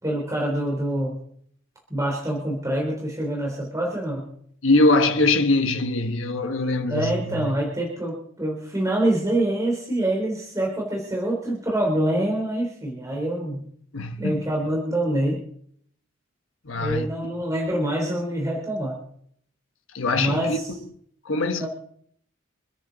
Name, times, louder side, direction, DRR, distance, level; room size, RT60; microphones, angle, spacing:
voice 1, 0.0-1.2 1.9-4.3 6.9-13.6 14.2-15.4 16.8-19.0 20.2-20.7 21.6-21.7, right 1 dB, 15° right, 3.7 m, -25 dB
voice 2, 4.6-7.5 13.9-14.4 16.6-17.1 19.9-20.6 21.2-21.7, left 2 dB, 90° left, 1.4 m, -22 dB
27.5 x 9.9 x 4.1 m
head